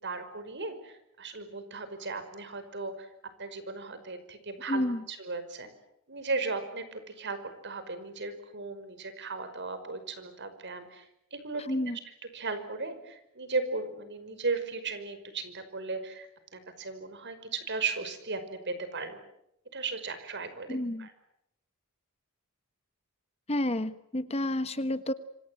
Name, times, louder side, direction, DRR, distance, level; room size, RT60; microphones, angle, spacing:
voice 1, 0.0-3.1 3.4-5.7 6.1-7.4 7.6-11.6 12.3-16.3 16.5-19.2 19.7-20.7 21.0-21.1, right 4 dB, 55° right, 11 dB, 5.4 m, -36 dB
voice 2, 4.7-5.0 11.7-12.0 20.7-21.1 23.5-25.1, left 1 dB, 30° left, 12 dB, 1.2 m, -30 dB
27.0 x 25.5 x 7.8 m, 0.80 s
head